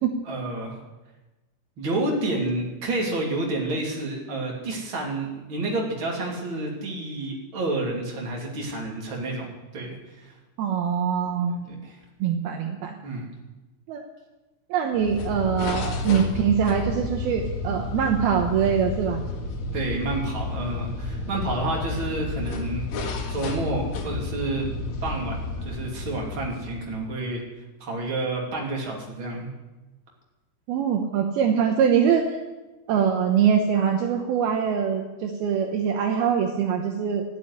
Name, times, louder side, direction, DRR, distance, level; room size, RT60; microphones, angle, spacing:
voice 1, 0.2-0.8 1.8-9.5 9.7-10.4 11.7-12.0 13.0-13.3 19.7-22.9 23.3-24.7 25.0-27.4 27.8-29.5, right 2 dB, 35° right, -1 dB, 3.3 m, -29 dB
voice 2, 10.6-11.6 12.2-12.9 13.9-14.0 14.7-19.2 30.7-32.4 32.9-37.2, right 7 dB, 75° right, 4 dB, 2.8 m, -23 dB
sound 1, 14.9-27.1, left 3 dB, 75° left, 3.6 m, -31 dB
14.5 x 8.6 x 9.9 m, 1.1 s
omnidirectional pair, 4.7 m